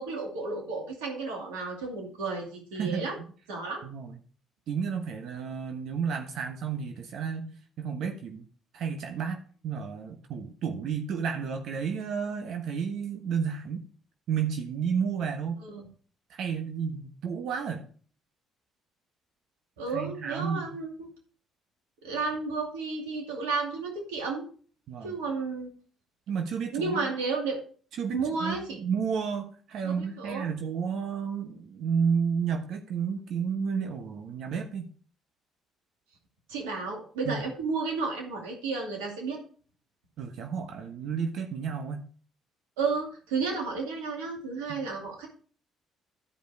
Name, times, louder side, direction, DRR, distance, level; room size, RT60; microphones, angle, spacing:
voice 1, 0.0-3.2 3.5-3.8 15.6-15.9 19.8-21.1 22.0-24.5 25.0-25.7 26.7-27.6 28.1-28.8 29.8-30.5 36.5-39.4 42.8-45.3, right 4 dB, 85° right, 1 dB, 2.3 m, -32 dB
voice 2, 2.7-3.1 3.8-4.2 4.7-8.4 8.7-13.9 14.3-15.6 16.3-17.8 19.9-20.8 24.9-25.2 26.3-27.1 28.0-34.8 37.2-37.4 40.2-42.0, right 6 dB, 65° right, 5 dB, 1.1 m, -31 dB
12.5 x 5.2 x 4.8 m, 0.43 s
hypercardioid pair, 55°, 0 cm